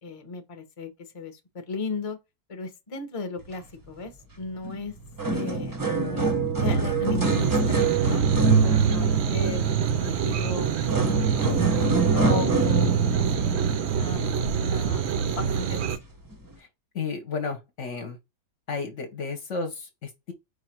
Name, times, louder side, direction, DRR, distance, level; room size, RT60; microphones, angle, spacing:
voice 1, 0.0-2.2 2.5-4.9 5.3-8.2 8.8-10.7 11.0-15.9, left 3 dB, 30° left, 0.7 m, -36 dB
sound 1, 4.6-4.8 5.0-14.7 15.4-15.6 16.3-16.4, right 4 dB, 25° right, 0.4 m, -25 dB
sound 2, 7.2-16.0, right 7 dB, 75° right, 0.6 m, -26 dB
voice 2, 16.9-18.2 18.7-20.3, left 4 dB, 55° left, 1.0 m, -33 dB
4.9 x 2.4 x 4.3 m
omnidirectional pair, 1.8 m